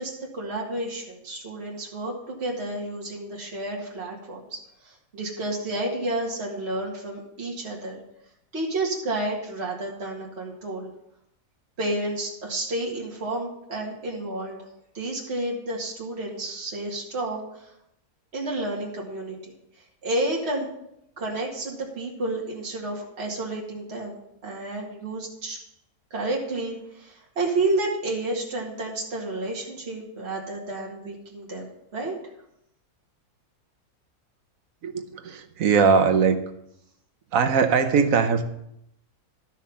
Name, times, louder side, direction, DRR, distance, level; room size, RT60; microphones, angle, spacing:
voice 1, 0.0-8.0 8.5-10.9 11.8-14.6 14.9-17.7 18.3-19.5 20.0-20.7 21.2-24.2 24.4-25.6 26.1-32.2, right 2 dB, 45° right, -3 dB, 2.2 m, -30 dB
voice 2, 34.8-36.4 37.3-38.5, right 5 dB, 65° right, 8 dB, 1.2 m, -20 dB
12.5 x 6.3 x 5.7 m, 0.78 s
omnidirectional pair, 1.6 m